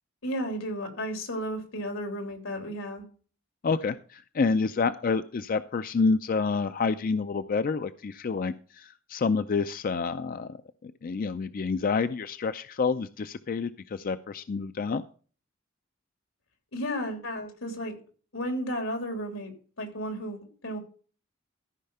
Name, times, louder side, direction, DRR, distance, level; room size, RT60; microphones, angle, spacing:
voice 1, 0.2-3.0 16.7-17.9 18.3-19.5 19.8-20.8, equal, 90° left, 4 dB, 3.2 m, -33 dB
voice 2, 3.6-10.6 10.8-15.0, left 4 dB, 45° left, 12 dB, 0.4 m, -28 dB
14.0 x 5.6 x 5.4 m, 0.41 s
head